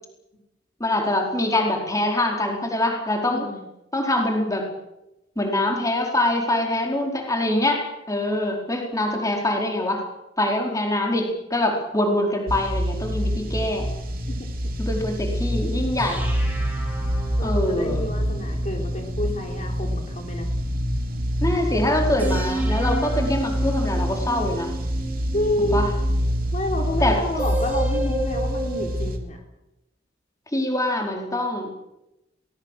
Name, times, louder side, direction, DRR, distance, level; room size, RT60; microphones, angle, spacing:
voice 1, 0.8-3.5 3.9-4.6 5.4-7.8 8.1-10.0 10.4-13.9 14.8-16.2 17.4-18.0 21.4-24.7 25.6-25.9 27.0-27.2 30.5-31.7, left 1 dB, 20° left, 1 dB, 4.6 m, -24 dB
voice 2, 3.2-3.6 14.3-14.4 17.4-20.5 25.3-25.8 26.5-29.4, left 1 dB, 40° left, 1 dB, 3.7 m, -29 dB
sound 1, 12.5-29.2, equal, 50° right, 3.6 m, -26 dB
sound 2, 16.0-21.2 22.2-26.4 27.4-29.0, right 2 dB, 10° right, 6.2 m, -34 dB
23.0 x 19.5 x 7.6 m, 0.92 s
head